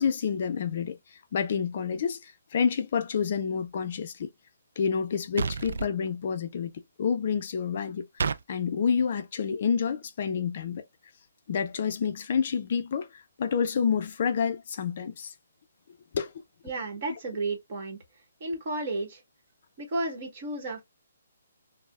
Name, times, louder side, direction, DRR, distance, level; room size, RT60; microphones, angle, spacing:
voice 1, 0.0-4.3 4.8-6.7 7.0-10.9 11.5-15.3 16.1-16.3, left 6 dB, 40° left, 0.4 m, -29 dB
sound 1, 5.4-5.9 8.2-8.4, right 5 dB, 65° right, 0.3 m, -29 dB
voice 2, 16.6-18.0 18.4-19.2 19.8-20.8, right 2 dB, 35° right, 1.3 m, -32 dB
5.3 x 2.0 x 2.3 m
hypercardioid pair, 170°, 0 cm